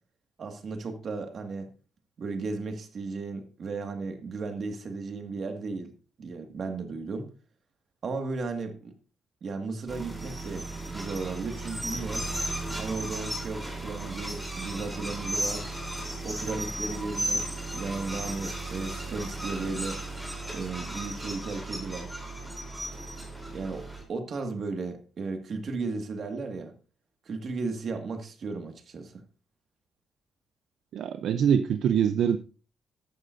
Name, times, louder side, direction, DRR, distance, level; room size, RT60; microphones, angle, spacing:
voice 1, 0.4-1.7 2.2-5.9 6.2-7.3 8.0-8.9 9.4-12.3 12.8-15.7 16.2-20.0 20.5-22.1 23.5-26.7 27.3-29.1, right 4 dB, 45° right, 1.9 m, -35 dB
sound 1, 9.9-24.0, right 1 dB, 5° right, 3.5 m, -35 dB
voice 2, 30.9-32.4, right 8 dB, 65° right, 0.6 m, -24 dB
14.5 x 11.5 x 2.6 m
cardioid pair, 150°, 0 cm